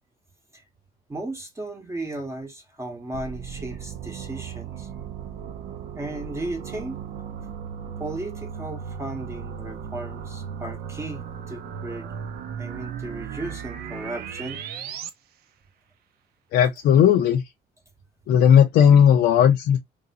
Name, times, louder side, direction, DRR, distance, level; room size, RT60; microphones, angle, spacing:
voice 1, 1.1-4.9 5.9-7.0 8.0-12.1 12.6-14.6, right 2 dB, 15° right, 0.8 m, -35 dB
sound 1, 3.1-15.1, right 7 dB, 65° right, 0.6 m, -36 dB
voice 2, 16.5-17.4 18.3-19.8, left 8 dB, 75° left, 0.5 m, -16 dB
3.2 x 2.6 x 2.7 m
cardioid pair, 110°, 17 cm